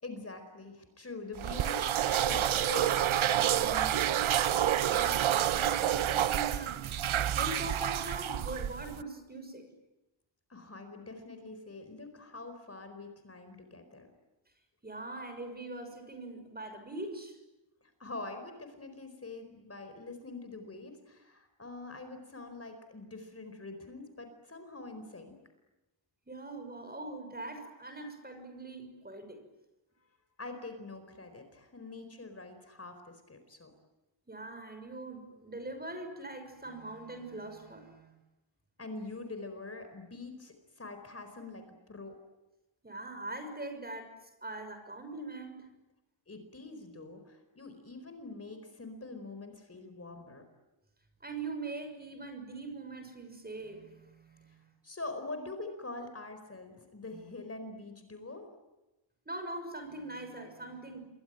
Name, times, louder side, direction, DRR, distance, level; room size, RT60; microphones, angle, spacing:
voice 1, 0.0-4.3 10.5-14.1 17.8-25.4 30.4-33.7 38.8-42.2 46.3-50.4 54.8-58.5, left 3 dB, 30° left, 7 dB, 4.5 m, -44 dB
sound 1, 1.4-9.0, right 11 dB, 80° right, 0.9 m, -29 dB
voice 2, 4.8-7.0 7.4-9.7 14.8-17.4 26.3-29.4 34.3-38.1 42.8-44.1 44.4-45.7 51.2-54.6 59.3-61.0, right 2 dB, 20° right, 7 dB, 6.2 m, -42 dB
28.0 x 23.0 x 9.1 m, 1.0 s
wide cardioid pair, 125°, 47 cm